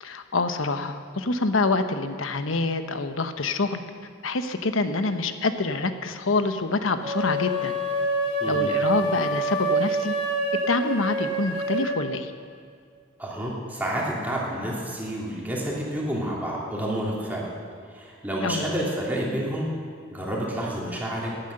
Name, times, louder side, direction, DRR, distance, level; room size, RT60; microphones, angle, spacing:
voice 1, 0.0-3.8 4.2-7.8 8.4-10.2 10.7-12.3 18.4-18.7, left 3 dB, 85° left, 9 dB, 1.0 m, -26 dB
sound 1, 7.0-12.0, right 1 dB, 30° right, 3.3 m, -26 dB
voice 2, 8.4-8.7 13.2-17.5 17.9-19.7 20.1-21.3, right 1 dB, 10° right, -5 dB, 3.0 m, -29 dB
17.5 x 9.9 x 6.6 m, 2.1 s
head